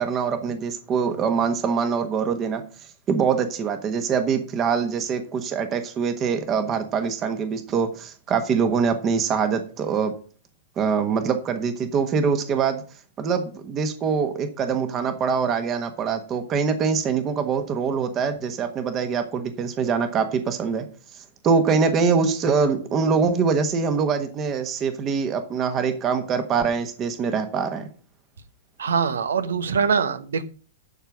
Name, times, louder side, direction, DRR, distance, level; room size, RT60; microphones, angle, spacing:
voice 1, 0.0-2.6 3.1-10.1 10.8-12.8 13.2-20.9 21.4-27.9, right 6 dB, 30° right, 9 dB, 1.3 m, -24 dB
voice 2, 28.8-30.4, right 6 dB, 80° right, 14 dB, 1.0 m, -23 dB
12.0 x 4.6 x 6.2 m, 0.41 s
hypercardioid pair, 115°, 0 cm